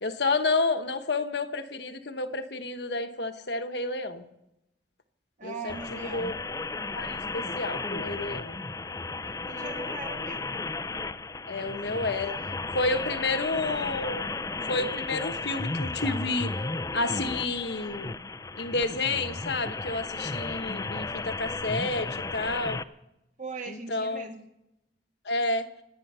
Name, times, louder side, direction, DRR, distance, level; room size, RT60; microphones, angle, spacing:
voice 1, 0.0-4.2 5.4-6.4 6.9-8.6 11.5-12.3 12.7-14.2 14.7-16.5 16.9-18.1 18.5-22.8 23.7-24.3 25.2-25.7, left 3 dB, 65° left, 9 dB, 1.2 m, -30 dB
voice 2, 5.4-6.3 9.4-10.6 11.7-12.4 23.4-24.4, right 3 dB, 45° right, 3 dB, 1.4 m, -40 dB
sound 1, 5.7-22.8, left 3 dB, 20° left, 0.5 m, -34 dB
27.0 x 9.2 x 5.6 m, 0.88 s
head